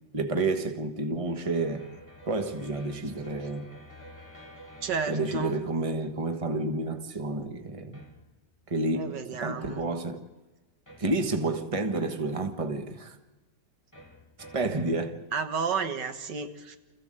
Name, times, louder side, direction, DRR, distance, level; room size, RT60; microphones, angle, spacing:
voice 1, 0.1-1.9 2.3-3.7 5.1-8.0 8.7-10.2 11.0-13.1 14.5-15.2, right 2 dB, 20° right, 1.3 m, -30 dB
sound 1, 1.2-6.3 7.9-8.6 10.9-11.6 13.9-14.9, equal, 10° left, 2.8 m, -50 dB
voice 2, 4.8-5.6 9.0-9.8 15.3-16.8, right 6 dB, 80° right, 2.0 m, -31 dB
27.0 x 15.0 x 7.7 m
omnidirectional pair, 1.8 m